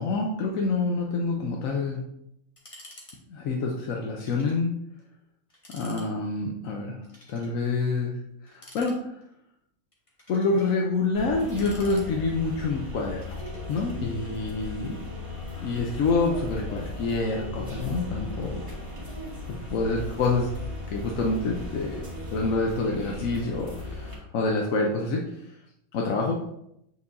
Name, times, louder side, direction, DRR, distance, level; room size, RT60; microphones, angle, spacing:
voice 1, 0.0-2.0 3.3-4.7 5.7-7.0 7.3-8.2 8.5-9.1 10.3-13.4 13.7-15.0 15.6-18.6 19.5-20.5 20.9-22.1 22.3-25.5 25.9-26.4, left 3 dB, 70° left, 0 dB, 1.1 m, -27 dB
sound 1, 2.6-3.2 3.4-3.5 4.2-4.6 5.0-5.1 5.5-6.1 7.0-7.6 8.5-9.3 9.9-10.7 11.3-12.5 13.2-13.9, left 1 dB, 25° left, 1.3 m, -50 dB
sound 2, 11.1-24.1, left 2 dB, 20° right, 1.9 m, -37 dB
8.2 x 4.7 x 2.6 m, 0.78 s
omnidirectional pair, 1.5 m